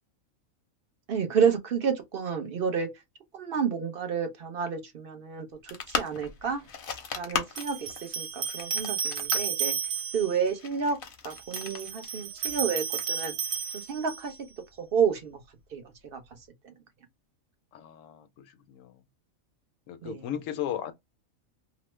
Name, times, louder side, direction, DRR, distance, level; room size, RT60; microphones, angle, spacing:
voice 1, 1.1-2.9 3.3-6.6 7.2-9.7 10.1-11.0 11.2-13.3 13.7-14.3 14.8-15.4 15.7-16.2 16.6-16.7 20.0-20.3, right 6 dB, 50° right, 0.8 m, -30 dB
sound 1, 5.7-13.9, left 6 dB, 50° left, 0.7 m, -38 dB
sound 2, 6.3-6.4 7.6-10.4 11.3-14.4, right 8 dB, 80° right, 1.1 m, -32 dB
voice 2, 17.7-19.0 19.9-20.9, left 10 dB, 75° left, 1.0 m, -36 dB
3.0 x 2.1 x 3.1 m
omnidirectional pair, 1.4 m